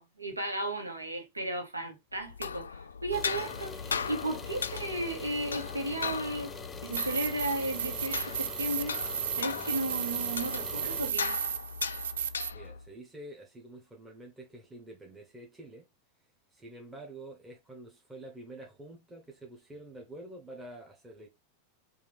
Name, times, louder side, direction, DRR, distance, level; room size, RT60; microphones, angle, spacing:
voice 1, 0.0-6.5 6.8-9.0 9.4-11.4, right 1 dB, 80° right, 1.3 m, -35 dB
sound 1, 2.2-12.9, left 6 dB, 70° left, 0.4 m, -38 dB
sound 2, 3.1-11.1, left 4 dB, 15° left, 0.7 m, -44 dB
sound 3, 6.9-12.5, right 9 dB, 60° right, 0.4 m, -34 dB
voice 2, 12.5-15.9 16.5-21.3, right 1 dB, 10° right, 1.0 m, -47 dB
5.0 x 2.6 x 3.4 m
figure-of-eight pair, 90°, 0 cm